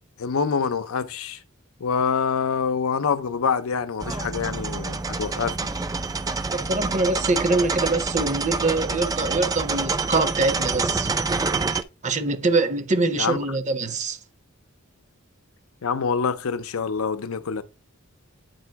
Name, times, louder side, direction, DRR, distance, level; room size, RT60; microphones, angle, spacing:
voice 1, 0.2-1.4 1.8-5.7 13.2-13.4 15.8-17.6, left 6 dB, 80° left, 0.6 m, -26 dB
sound 1, 4.0-11.8, right 3 dB, 15° right, 0.3 m, -27 dB
voice 2, 6.5-11.1 12.0-14.2, right 3 dB, 35° right, 0.8 m, -24 dB
9.0 x 3.0 x 4.6 m
head